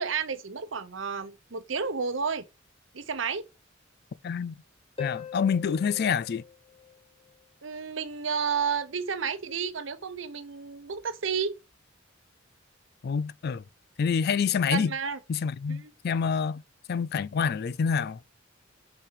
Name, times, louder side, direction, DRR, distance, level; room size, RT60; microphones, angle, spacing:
voice 1, 0.0-2.4 2.9-3.4 7.6-11.5 14.7-15.2 15.7-15.9, right 6 dB, 70° right, 0.9 m, -31 dB
voice 2, 4.2-4.6 5.0-6.4 13.0-13.6 14.0-14.9 15.3-16.6 16.9-18.2, left 6 dB, 50° left, 0.4 m, -27 dB
Harp, 5.0-7.5 11.0-11.1, left 8 dB, 30° left, 1.2 m, -41 dB
5.7 x 5.2 x 4.7 m
head